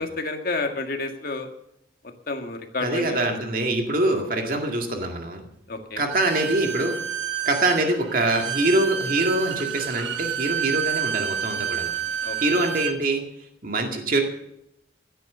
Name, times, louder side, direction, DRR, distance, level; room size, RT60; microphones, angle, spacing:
voice 1, 0.0-1.5 2.3-3.2 5.7-6.0 12.2-12.6, left 3 dB, 50° left, 4 dB, 1.8 m, -30 dB
voice 2, 2.8-5.4 6.0-7.0 7.5-11.9 12.4-13.2 13.6-14.2, right 2 dB, 45° right, 3 dB, 2.1 m, -24 dB
Bowed string instrument, 6.1-13.0, right 9 dB, 80° right, 1.3 m, -29 dB
15.0 x 9.3 x 6.8 m, 0.78 s
head